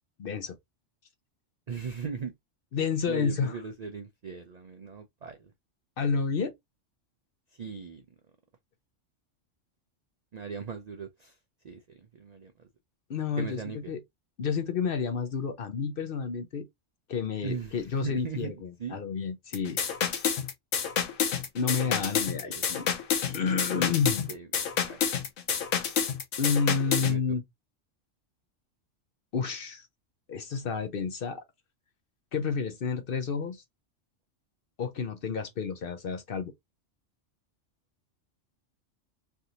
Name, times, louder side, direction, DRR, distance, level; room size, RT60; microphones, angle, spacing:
voice 1, 0.2-0.6 2.7-3.6 6.0-6.5 13.1-14.0 14.4-16.7 17.1-19.8 21.5-22.9 23.3-24.3 26.4-27.4 29.3-29.9 30.3-31.4 32.3-33.6 34.8-36.5, left 5 dB, 55° left, 0.7 m, -30 dB
voice 2, 1.7-2.3 3.1-5.4 7.6-8.0 10.3-11.3 11.6-11.8 12.2-12.5 13.4-13.9 17.4-17.7 18.0-18.5 18.8-19.0 22.4-22.6 24.3-24.5 24.9-25.0 26.9-27.2, right 5 dB, 60° right, 0.4 m, -38 dB
sound 1, 19.5-27.1, left 7 dB, 85° left, 1.2 m, -29 dB
3.4 x 2.5 x 2.8 m
omnidirectional pair, 1.3 m